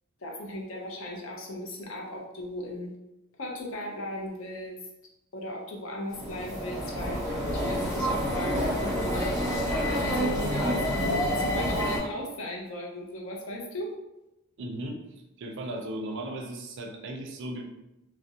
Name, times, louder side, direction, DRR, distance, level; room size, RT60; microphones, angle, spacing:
voice 1, 0.2-2.9 3.4-4.7 5.3-7.2 7.5-9.4 9.9-13.9, left 1 dB, 65° left, 0 dB, 0.5 m, -37 dB
sound 1, 6.1-12.0, equal, 15° left, 1.0 m, -28 dB
voice 2, 14.6-15.0 15.4-17.6, right 1 dB, 60° right, 2 dB, 0.4 m, -36 dB
2.4 x 2.0 x 2.7 m, 0.93 s
head